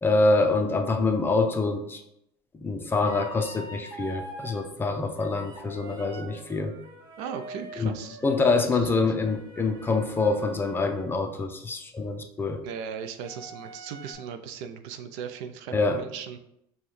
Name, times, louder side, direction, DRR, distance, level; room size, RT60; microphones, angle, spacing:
voice 1, 0.0-2.0 2.6-6.7 7.8-7.9 8.2-12.6 15.7-16.0, left 3 dB, 15° left, 5 dB, 0.5 m, -25 dB
sound 1, 3.0-4.7 5.2-11.1 13.2-14.1, right 1 dB, 35° right, 1.3 m, -44 dB
voice 2, 7.2-9.1 12.6-16.4, right 7 dB, 75° right, 8 dB, 0.5 m, -38 dB
5.3 x 2.3 x 3.1 m, 0.79 s
supercardioid pair, 110°, 12 cm